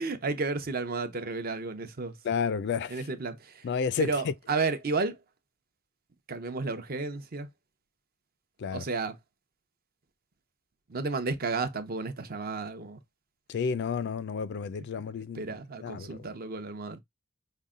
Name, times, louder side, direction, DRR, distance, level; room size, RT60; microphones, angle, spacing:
voice 1, 0.0-2.2 2.9-3.7 4.0-5.2 6.3-7.5 8.7-9.2 10.9-13.0 15.3-17.0, right 3 dB, 45° right, 0.7 m, -32 dB
voice 2, 2.2-3.0 3.6-4.3 8.6-8.8 13.5-16.2, left 6 dB, 55° left, 0.4 m, -31 dB
5.4 x 2.2 x 3.6 m
head